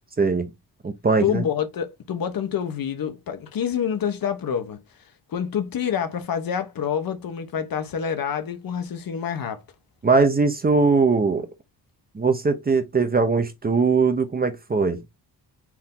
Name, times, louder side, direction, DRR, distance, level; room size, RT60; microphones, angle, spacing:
voice 1, 0.2-0.5 0.8-1.4 10.0-11.5 12.1-15.0, right 4 dB, 25° right, 0.7 m, -20 dB
voice 2, 1.2-4.8 5.3-9.6, left 8 dB, 60° left, 0.9 m, -27 dB
4.5 x 2.7 x 3.7 m
cardioid pair, 110°, 39 cm